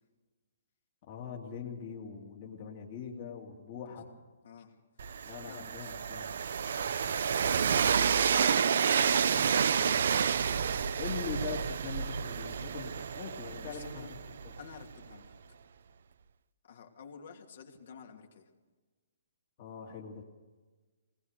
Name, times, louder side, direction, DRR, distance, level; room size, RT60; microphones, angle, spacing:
voice 1, 1.1-4.1 5.3-6.3 11.0-14.2 14.4-14.5 19.6-20.2, left 6 dB, 35° left, -1 dB, 2.4 m, -42 dB
Train, 5.0-14.8, right 7 dB, 60° right, 0.7 m, -29 dB
voice 2, 7.3-8.9 9.2-10.0 13.6-14.1 14.6-15.3 16.6-18.4, left 6 dB, 60° left, 2 dB, 3.0 m, -49 dB
20.5 x 19.5 x 6.5 m, 1.3 s
hypercardioid pair, 165°, 0 cm